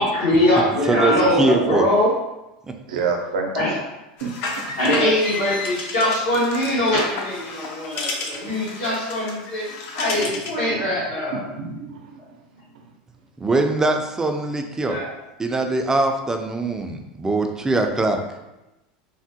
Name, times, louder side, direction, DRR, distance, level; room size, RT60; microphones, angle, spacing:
voice 1, 0.0-2.1 3.5-3.7 4.8-11.4 14.8-15.1, left 1 dB, 80° left, -10 dB, 1.2 m, -22 dB
voice 2, 0.9-1.9 13.4-15.0 15.4-18.2, right 2 dB, 15° right, 4 dB, 0.3 m, -22 dB
voice 3, 2.9-3.7 4.2-4.3 4.6-4.7 5.0-5.1 10.2-10.4 10.7-11.0 11.3-12.2 12.7-12.8, right 5 dB, 85° right, 1 dB, 0.5 m, -29 dB
sound 1, 4.2-10.6, left 3 dB, 60° left, 0.5 m, -32 dB
3.4 x 2.1 x 2.7 m, 0.95 s
supercardioid pair, 110°, 4 cm